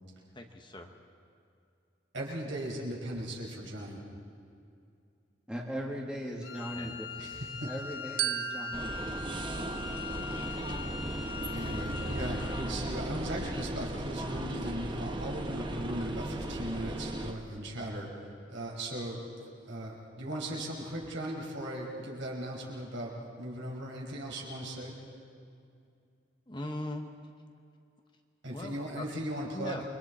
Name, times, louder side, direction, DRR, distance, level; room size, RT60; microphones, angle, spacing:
voice 1, 0.3-0.9 6.7-7.0 26.5-27.0 28.5-29.0 29.4-29.8, left 1 dB, 25° left, 4 dB, 1.1 m, -40 dB
voice 2, 2.1-4.0 7.2-7.7 11.5-18.2 18.5-19.2 19.7-25.0 28.4-29.8, right 1 dB, 70° right, -2 dB, 5.2 m, -38 dB
voice 3, 5.5-7.1 7.7-9.1, equal, 5° right, -3 dB, 2.0 m, -39 dB
Wind instrument woodwind instrument, 6.4-12.8, left 7 dB, 70° left, 1.2 m, -42 dB
Glockenspiel, 8.2-10.7, right 14 dB, 45° right, 0.4 m, -37 dB
sound 1, 8.7-17.3, right 1 dB, 25° right, 1.2 m, -36 dB
29.0 x 23.5 x 4.3 m, 2.4 s
head